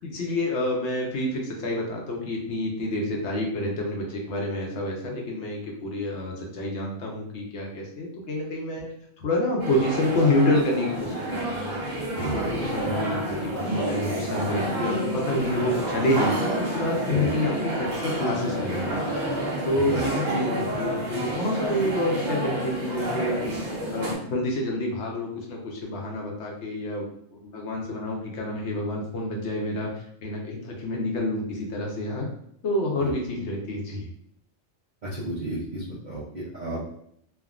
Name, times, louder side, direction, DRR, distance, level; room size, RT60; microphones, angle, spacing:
voice 1, 0.0-8.9 9.2-11.8 12.2-19.0 19.6-23.5 23.9-32.3 32.6-34.1, left 1 dB, 65° left, 0 dB, 0.9 m, -28 dB
sound 1, 9.6-24.1, right 1 dB, 75° right, 1.2 m, -29 dB
voice 2, 12.2-12.5 17.1-17.3 19.9-20.1 33.0-33.1 35.0-36.9, right 1 dB, 55° right, -7 dB, 0.5 m, -32 dB
3.4 x 2.1 x 2.3 m, 0.70 s
omnidirectional pair, 1.4 m